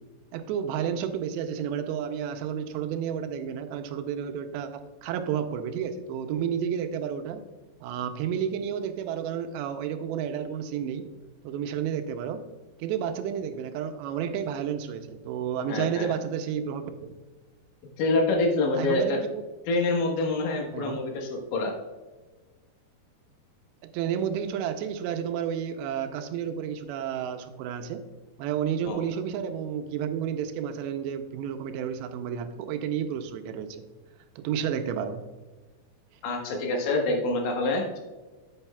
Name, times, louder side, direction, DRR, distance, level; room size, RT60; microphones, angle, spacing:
voice 1, 0.3-7.4 7.8-11.1 11.4-12.4 12.8-16.9 18.8-19.4 20.7-21.0 23.8-28.0 28.4-33.8 34.4-35.2, right 8 dB, 85° right, 8 dB, 2.8 m, -31 dB
voice 2, 15.7-16.1 18.0-19.2 19.7-21.8 28.9-29.0 36.2-38.0, left 2 dB, 90° left, 1 dB, 3.8 m, -26 dB
9.8 x 8.9 x 2.3 m, 1.3 s
omnidirectional pair, 5.0 m